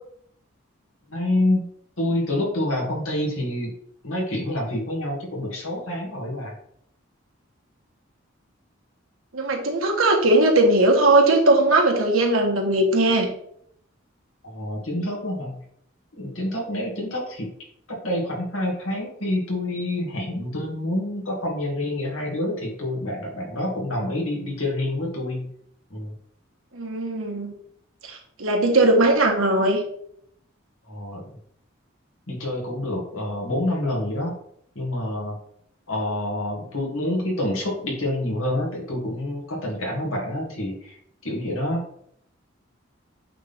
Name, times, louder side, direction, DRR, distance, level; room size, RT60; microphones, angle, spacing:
voice 1, 1.1-1.7 2.0-3.7 4.0-6.6 14.4-15.6 16.2-17.5 18.0-25.5 25.9-26.1 30.9-31.2 32.3-34.3 34.7-35.4 35.9-41.0 41.2-41.8, left 1 dB, 85° left, -1 dB, 2.5 m, -27 dB
voice 2, 9.3-13.3 26.7-27.5 28.0-29.8, right 2 dB, 90° right, 1 dB, 1.6 m, -19 dB
8.5 x 3.9 x 3.7 m, 0.68 s
head